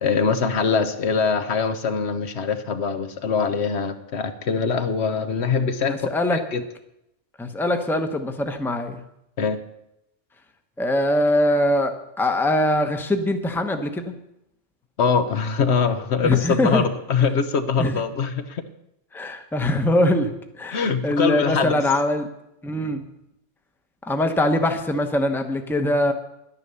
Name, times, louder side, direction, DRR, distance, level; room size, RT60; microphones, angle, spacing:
voice 1, 0.0-6.6 9.4-9.6 15.0-18.6 20.7-21.8, left 5 dB, 65° left, 9 dB, 1.1 m, -23 dB
voice 2, 5.9-6.4 7.4-9.0 10.8-14.1 16.2-16.8 17.8-18.0 19.1-22.3 22.6-23.0 24.0-26.1, left 1 dB, ahead, 6 dB, 0.8 m, -22 dB
11.0 x 9.9 x 6.8 m, 0.82 s
omnidirectional pair, 1.2 m